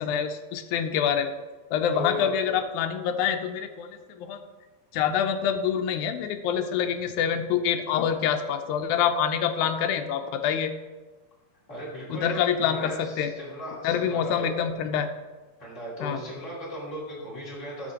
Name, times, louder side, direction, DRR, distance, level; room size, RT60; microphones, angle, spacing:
voice 1, 0.0-1.4 1.7-4.4 4.9-10.7 12.1-13.3 13.8-15.1 16.0-16.2, left 8 dB, 85° left, 6 dB, 2.0 m, -26 dB
voice 2, 1.9-2.3 11.7-14.6 15.6-17.9, left 1 dB, 25° left, -7 dB, 3.0 m, -37 dB
11.5 x 6.4 x 2.8 m, 1.2 s
omnidirectional pair, 3.3 m